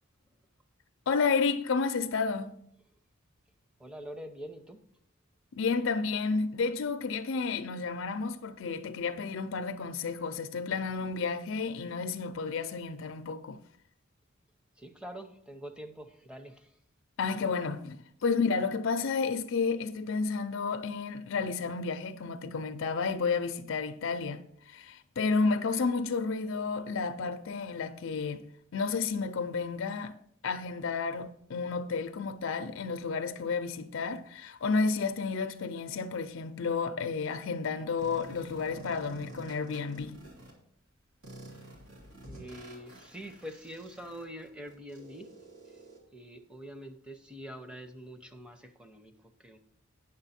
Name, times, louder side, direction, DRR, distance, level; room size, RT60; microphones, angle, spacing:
voice 1, 1.1-2.6 5.5-13.6 17.2-30.2 30.4-40.2, left 4 dB, 65° left, 0.4 m, -31 dB
voice 2, 3.8-4.8 14.8-16.7 42.3-45.3 45.6-45.8 46.1-49.6, equal, 5° right, 0.7 m, -45 dB
sound 1, 38.0-40.5 41.2-46.0, right 2 dB, 80° right, 2.3 m, -49 dB
8.9 x 6.3 x 4.2 m
head